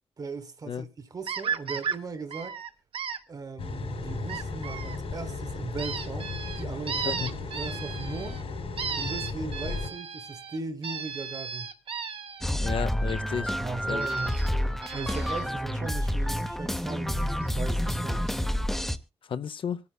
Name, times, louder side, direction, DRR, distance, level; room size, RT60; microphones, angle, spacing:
voice 1, 0.2-2.6 3.3-8.4 9.0-11.7 13.6-18.2, right 4 dB, 40° right, 1.3 m, -38 dB
sound 1, 1.3-2.0 2.3-3.2 4.3-5.0 5.8-8.4 8.8-12.5 14.0-14.5 14.8-15.5 17.5-17.6 17.9-18.0 18.3-18.4, right 6 dB, 65° right, 1.2 m, -35 dB
sound 2, 3.6-9.9, left 4 dB, 80° left, 4.3 m, -35 dB
sound 3, 12.4-19.0, equal, 5° left, 0.7 m, -29 dB
voice 2, 12.6-13.6 13.9-14.1 19.3-19.8, left 7 dB, 60° left, 0.7 m, -32 dB
25.0 x 9.7 x 2.2 m
wide cardioid pair, 160°, 10 cm